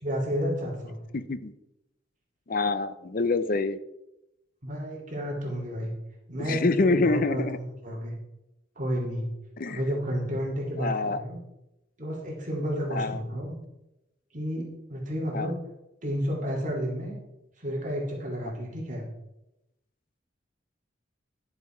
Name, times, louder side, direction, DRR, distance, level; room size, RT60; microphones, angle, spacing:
voice 1, 0.0-1.0 4.6-5.9 6.3-7.4 7.8-8.1 8.8-9.3 9.7-11.4 12.0-13.6 14.3-15.6 16.0-17.2 17.6-19.0, equal, 40° right, -2 dB, 2.5 m, -31 dB
voice 2, 1.1-1.5 2.5-3.8 6.4-7.6 9.6-9.8 10.8-11.2 12.9-13.2 15.3-15.5, left 3 dB, 45° left, 12 dB, 0.6 m, -26 dB
11.5 x 7.2 x 4.4 m, 0.91 s
head